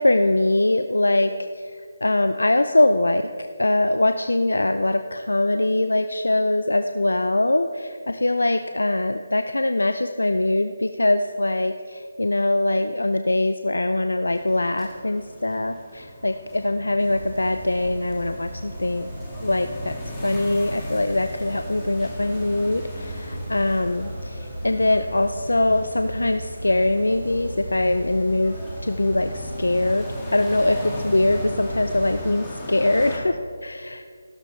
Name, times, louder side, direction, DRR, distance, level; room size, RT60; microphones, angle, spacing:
voice 1, 0.0-1.7 2.0-3.2 3.6-19.1 19.4-20.0 20.2-28.5 28.8-30.1 30.3-34.0, left 2 dB, 85° left, 8 dB, 0.5 m, -22 dB
sound 1, 14.3-33.2, left 1 dB, 10° left, 1.9 m, -39 dB
sound 2, 17.0-32.3, equal, 85° right, 1.6 m, -36 dB
15.0 x 13.0 x 3.2 m, 2.1 s
figure-of-eight pair, 160°, 0 cm